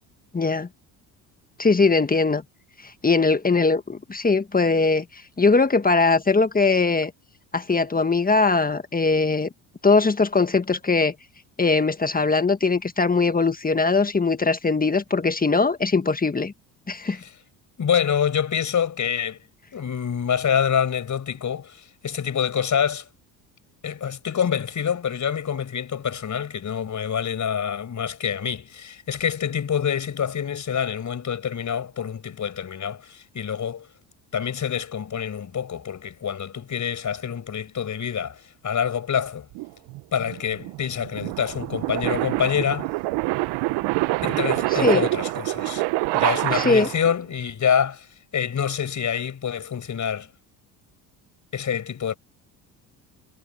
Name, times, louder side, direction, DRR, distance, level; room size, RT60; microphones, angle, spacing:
voice 1, 0.3-0.7 1.6-2.4 2.8-7.1 7.5-9.5 9.8-11.1 11.6-16.5 16.9-17.2 44.7-45.0 46.5-46.9, left 4 dB, 20° left, 1.6 m, -21 dB
voice 2, 17.8-19.4 19.7-23.1 23.8-33.9 34.3-39.5 40.1-42.9 44.2-45.8 46.1-48.1 48.3-50.3 51.5-52.1, left 8 dB, 40° left, 6.1 m, -26 dB
sound 1, 39.6-47.2, right 21 dB, 70° right, 1.1 m, -26 dB
hypercardioid pair, 65°, 43 cm